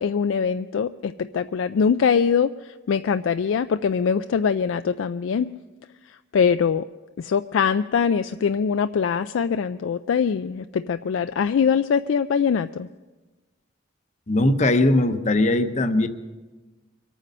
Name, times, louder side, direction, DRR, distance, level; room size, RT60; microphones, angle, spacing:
voice 1, 0.0-2.5 2.9-5.5 6.3-6.8 7.2-12.9, left 6 dB, 80° left, 11 dB, 0.4 m, -22 dB
voice 2, 14.3-16.1, left 2 dB, 40° left, 9 dB, 0.8 m, -20 dB
23.5 x 9.2 x 5.5 m, 1.2 s
head